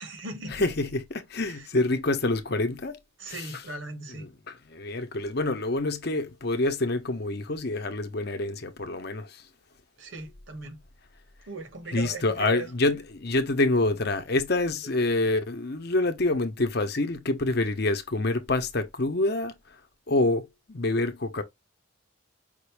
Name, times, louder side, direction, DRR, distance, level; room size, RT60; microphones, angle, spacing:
voice 1, 0.0-0.7 1.5-1.7 3.2-4.3 10.0-10.8 11.5-12.7, right 3 dB, 70° right, 1.4 m, -38 dB
voice 2, 0.5-3.0 3.3-3.6 4.1-9.4 11.9-19.5 20.1-21.4, left 2 dB, 50° left, 0.9 m, -27 dB
5.3 x 2.6 x 3.3 m
head